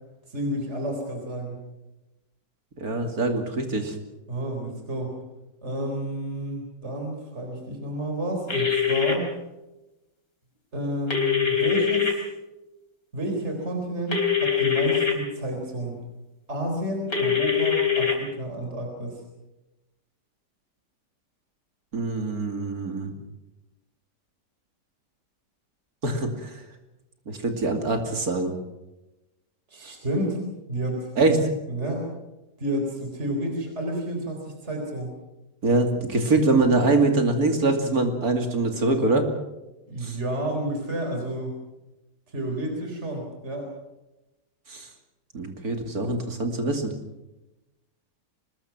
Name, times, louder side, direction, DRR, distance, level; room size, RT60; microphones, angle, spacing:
voice 1, 0.3-1.6 4.3-5.2 5.6-9.3 10.7-12.2 13.1-15.9 16.5-19.2 29.7-30.4 30.7-31.1 31.7-32.1 32.6-35.2 39.9-41.6 42.3-43.7, right 1 dB, 40° right, 2 dB, 4.3 m, -30 dB
voice 2, 2.8-3.9 21.9-23.1 26.0-26.5 27.3-28.5 31.2-31.4 35.6-39.3 40.0-40.2 44.7-44.9 45.3-46.9, right 2 dB, 60° right, 5 dB, 3.1 m, -24 dB
sound 1, 8.5-9.1 11.1-12.1 14.1-15.1 17.1-18.1, left 7 dB, 55° left, 3.8 m, -23 dB
25.0 x 20.5 x 6.0 m, 0.99 s
omnidirectional pair, 1.8 m